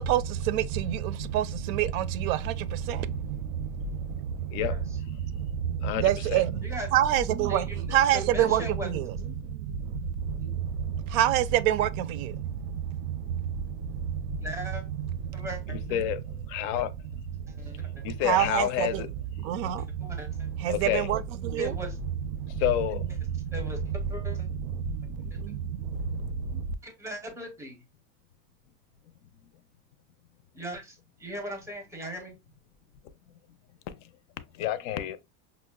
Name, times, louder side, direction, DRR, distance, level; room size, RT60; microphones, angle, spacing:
voice 1, 0.0-16.0 17.3-19.1 19.4-22.9 23.3-26.7, right 10 dB, 85° right, 0.5 m, -29 dB
voice 2, 5.8-6.4 15.7-16.2 16.5-16.9 18.0-19.1 20.7-21.1 22.6-23.2 33.9-34.0 34.6-35.2, left 11 dB, 65° left, 0.5 m, -29 dB
voice 3, 7.5-8.9 10.4-10.5 14.4-14.8 15.3-15.8 17.5-17.9 20.0-20.5 21.5-21.9 23.5-24.5 25.2-25.3 26.8-27.8 30.5-32.3, equal, 5° right, 0.6 m, -39 dB
5.5 x 2.0 x 2.2 m
cardioid pair, 170°, 40 cm